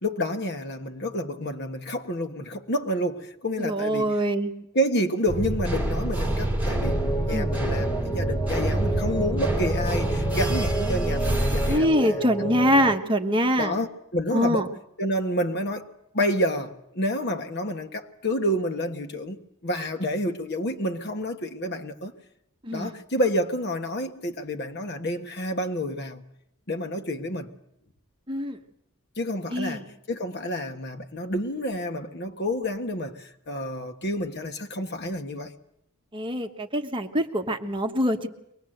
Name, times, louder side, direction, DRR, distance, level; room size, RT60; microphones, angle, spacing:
voice 1, 0.0-4.1 4.7-12.2 13.6-14.7 15.0-22.1 22.7-26.2 26.7-27.5 29.2-35.5, equal, 50° left, 1.5 m, -29 dB
voice 2, 3.6-4.5 7.3-7.5 11.7-13.7 14.3-14.7 22.6-22.9 28.3-28.6 29.5-29.8 36.1-38.3, equal, 25° right, 1.2 m, -24 dB
sound 1, 5.3-11.8, right 1 dB, 5° right, 2.8 m, -26 dB
sound 2, 6.7-13.0, right 1 dB, 15° left, 0.8 m, -31 dB
23.5 x 19.5 x 7.9 m
head